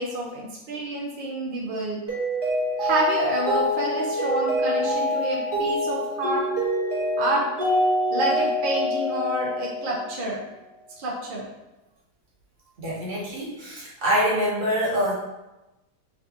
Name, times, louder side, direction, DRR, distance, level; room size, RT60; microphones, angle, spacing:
voice 1, 0.0-2.0 2.8-6.4 7.2-7.4 8.1-10.4 11.0-11.5, right 1 dB, 70° right, -3 dB, 0.5 m, -28 dB
Mallet percussion, 2.1-10.2, left 1 dB, 20° right, 0.7 m, -25 dB
voice 2, 12.8-15.1, equal, 35° right, -7 dB, 1.2 m, -25 dB
3.7 x 2.7 x 3.5 m, 1.0 s
omnidirectional pair, 1.7 m